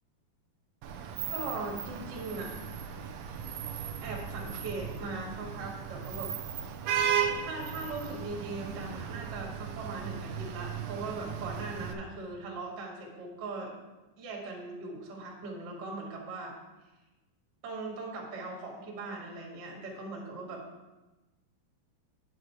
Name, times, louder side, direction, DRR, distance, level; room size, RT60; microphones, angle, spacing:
Vehicle horn car horn honking / Traffic noise roadway noise, 0.8-11.9, right 7 dB, 85° right, 1.4 m, -36 dB
voice 1, 1.3-2.6 4.0-6.3 7.1-13.7 14.2-16.5 17.6-20.6, right 3 dB, 40° right, -2 dB, 1.9 m, -40 dB
9.2 x 6.5 x 4.6 m, 1.1 s
omnidirectional pair, 3.9 m